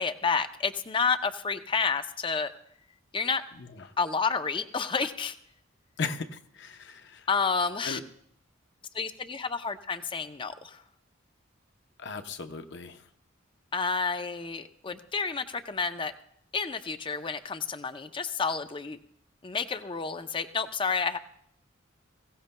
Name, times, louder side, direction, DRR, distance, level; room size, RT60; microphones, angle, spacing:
voice 1, 0.0-2.5 3.1-3.4 4.0-5.4 7.3-8.0 8.9-10.8 13.7-16.1 16.5-19.0 19.4-21.2, left 5 dB, 25° left, 10 dB, 0.5 m, -30 dB
voice 2, 6.0-7.2 7.9-8.0 12.0-12.9, left 4 dB, 55° left, 8 dB, 0.7 m, -36 dB
21.5 x 16.5 x 2.2 m, 0.70 s
head